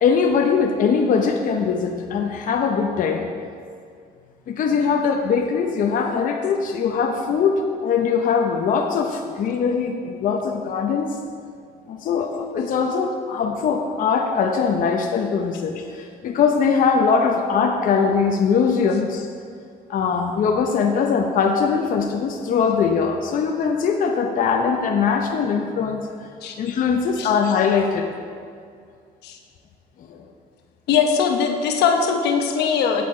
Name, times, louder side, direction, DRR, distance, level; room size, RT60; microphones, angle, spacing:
voice 1, 0.0-3.3 4.5-11.1 11.9-19.3 19.9-26.3 26.6-28.1 30.1-30.3, left 6 dB, 55° left, 3 dB, 0.7 m, -21 dB
voice 2, 30.9-33.1, left 6 dB, 80° left, 4 dB, 1.0 m, -20 dB
8.5 x 8.3 x 4.3 m, 2.2 s
cardioid pair, 110°, 17 cm